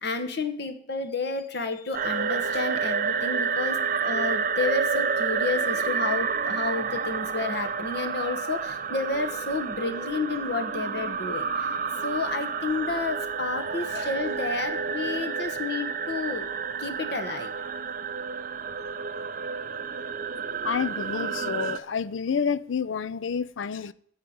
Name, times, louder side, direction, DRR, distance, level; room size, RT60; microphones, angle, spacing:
voice 1, 0.0-11.7 12.0-16.5 16.8-17.6, left 3 dB, 55° left, 1.2 m, -31 dB
sound 1, 1.9-21.8, right 6 dB, 45° right, 0.5 m, -29 dB
voice 2, 20.6-23.9, left 6 dB, 75° left, 0.5 m, -29 dB
14.0 x 4.8 x 8.7 m
head